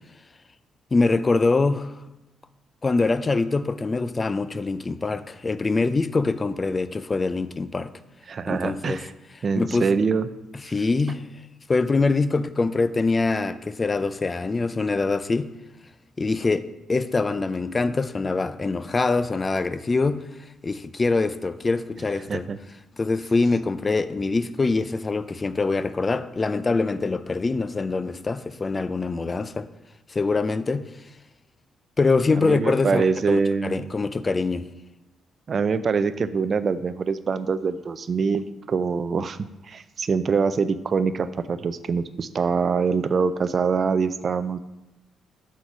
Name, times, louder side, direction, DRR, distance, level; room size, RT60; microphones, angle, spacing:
voice 1, 0.9-1.9 2.8-7.9 8.5-9.0 9.6-9.9 10.7-11.3 11.7-15.5 16.2-20.2 20.6-22.5 23.0-29.7 30.1-30.9 32.0-34.7, left 3 dB, 30° left, 0.4 m, -24 dB
voice 2, 8.3-9.1 9.4-10.3 22.3-22.6 32.4-33.9 35.5-44.6, right 5 dB, 45° right, 0.4 m, -24 dB
6.2 x 4.0 x 5.9 m
cardioid pair, 90°, 0 cm